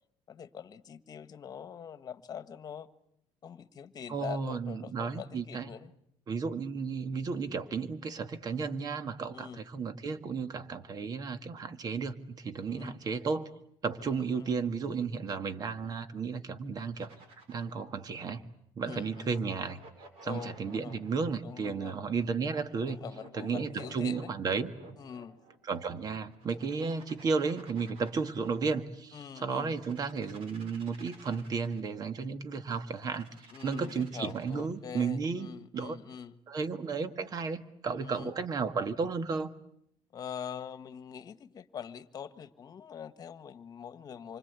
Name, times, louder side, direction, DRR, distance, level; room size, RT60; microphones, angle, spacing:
voice 1, 0.3-2.9 3.4-5.9 9.3-9.6 12.7-12.9 14.0-14.6 18.8-19.3 20.2-21.9 22.9-24.3 25.0-25.4 26.5-26.9 29.1-29.7 33.5-36.4 38.0-38.3 40.1-44.4, left 8 dB, 35° left, 12 dB, 1.6 m, -44 dB
voice 2, 4.1-5.7 6.3-13.5 13.8-17.1 17.5-18.4 18.8-19.8 20.2-23.0 23.3-24.7 25.6-33.3 33.6-35.5 35.7-36.0 36.5-39.5, right 5 dB, 40° right, 10 dB, 1.9 m, -33 dB
sound 1, 16.9-17.8 18.8-21.3 22.1-25.6 26.3-28.7 29.4-31.9 32.8-34.8, right 3 dB, 60° right, 7.4 m, -54 dB
27.5 x 25.0 x 8.3 m, 0.73 s
cardioid pair, 135°, 11 cm